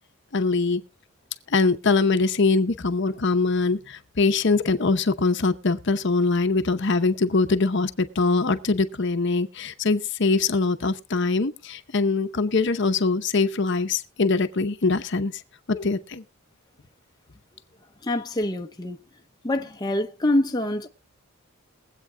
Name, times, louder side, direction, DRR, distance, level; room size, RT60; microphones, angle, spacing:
voice 1, 0.3-0.8 1.5-15.4 15.7-16.2, left 3 dB, 55° left, 0.8 m, -23 dB
voice 2, 18.0-19.0 19.4-20.9, left 1 dB, 20° left, 0.6 m, -25 dB
22.0 x 8.3 x 2.2 m
head